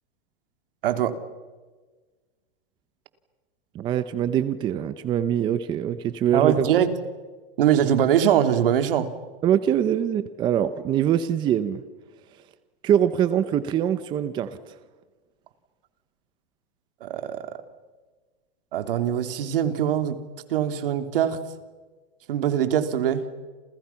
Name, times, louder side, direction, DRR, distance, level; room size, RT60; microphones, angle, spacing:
voice 1, 0.8-1.2 6.3-6.9 7.6-9.1 17.0-17.4 18.7-20.2 20.5-21.4 22.3-23.3, right 9 dB, 65° right, 8 dB, 3.0 m, -22 dB
voice 2, 3.7-6.7 9.4-11.8 12.8-14.6, right 10 dB, 15° right, 12 dB, 0.7 m, -23 dB
30.0 x 28.5 x 5.8 m, 1.3 s
supercardioid pair, 165°, 30 cm